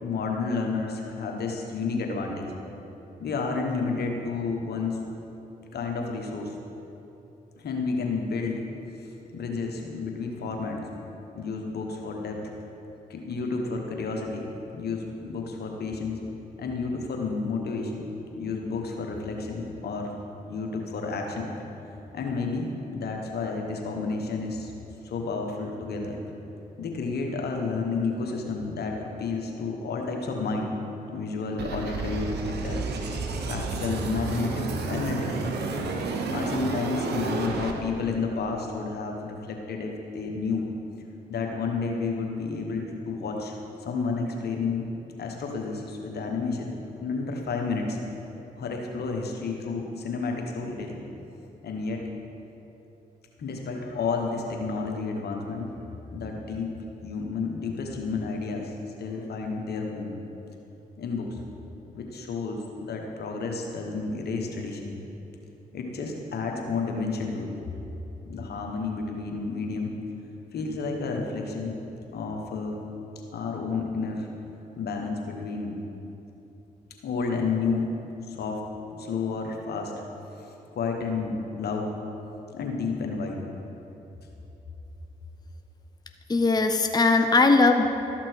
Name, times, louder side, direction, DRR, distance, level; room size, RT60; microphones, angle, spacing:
voice 1, 0.0-2.5 3.2-5.1 5.7-6.5 7.6-8.7 9.0-10.9 11.3-12.4 13.1-16.2 16.6-18.1 18.3-20.2 20.5-21.5 22.1-24.7 25.0-26.2 26.8-30.7 31.1-35.4 36.3-40.7 41.3-43.6 43.8-44.9 45.2-48.0 48.6-51.0 51.6-52.1 53.4-55.8 56.1-58.7 59.0-60.2 61.0-61.4 61.9-64.9 65.7-67.5 68.2-69.9 70.5-71.8 72.1-72.8 73.3-74.3 74.8-75.8 77.0-77.9 78.3-78.6 78.9-80.0 80.4-81.9 82.5-83.4, left 4 dB, 70° left, 2 dB, 1.3 m, -31 dB
sound 1, 31.6-37.7, right 3 dB, 70° right, 0.9 m, -30 dB
voice 2, 86.3-87.9, left 3 dB, 25° left, 6 dB, 0.7 m, -20 dB
12.5 x 6.0 x 4.6 m, 3.0 s
hypercardioid pair, 45°, 17 cm